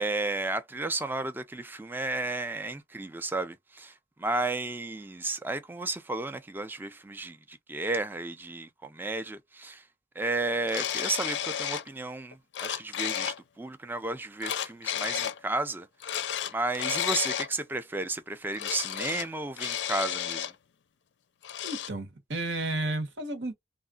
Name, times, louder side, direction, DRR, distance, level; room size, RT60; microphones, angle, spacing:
voice 1, 0.0-9.9 10.2-15.9 16.5-20.5, right 2 dB, 10° right, 0.3 m, -33 dB
sound 1, 10.7-11.9 12.3-13.4 14.4-15.4 16.0-17.5 18.5-19.3 19.6-20.5 21.4-21.9, left 10 dB, 80° left, 0.4 m, -32 dB
voice 2, 21.6-23.5, right 2 dB, 85° right, 1.1 m, -32 dB
3.0 x 2.4 x 2.2 m
head